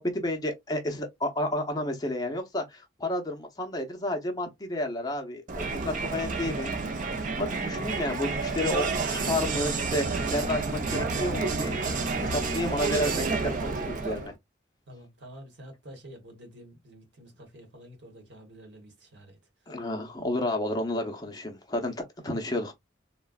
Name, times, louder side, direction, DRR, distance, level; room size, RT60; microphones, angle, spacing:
voice 1, 0.0-6.8 7.1-11.8 12.2-14.3 19.7-22.7, left 1 dB, 20° left, 0.6 m, -31 dB
Crowd, 5.5-14.3, right 4 dB, 45° right, 0.5 m, -30 dB
voice 2, 14.9-19.4, equal, 75° right, 1.0 m, -48 dB
3.7 x 2.1 x 2.3 m
head